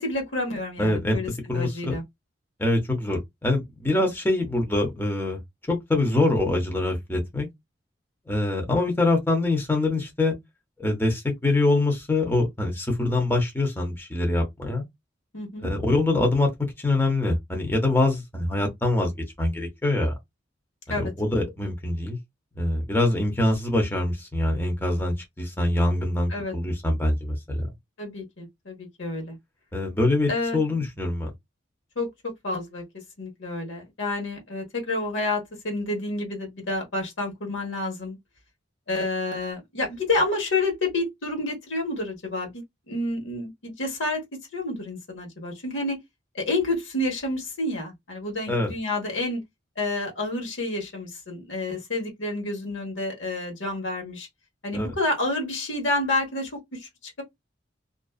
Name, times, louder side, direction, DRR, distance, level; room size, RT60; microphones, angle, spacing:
voice 1, 0.0-2.0 15.3-15.7 20.9-21.1 26.3-26.5 28.0-29.4 30.3-30.6 32.0-32.8 33.2-38.2 38.9-44.2 44.5-46.0 46.3-49.4 49.8-54.3 54.6-57.2, left 2 dB, 85° left, 1.1 m, -29 dB
voice 2, 0.8-2.0 2.6-5.4 5.7-7.5 8.3-10.3 10.8-14.8 15.6-16.5 16.8-19.1 19.4-20.1 20.9-22.2 22.5-27.7 29.7-31.3 48.5-48.7 54.7-54.9, left 2 dB, 10° left, 0.7 m, -24 dB
2.5 x 2.3 x 2.3 m
head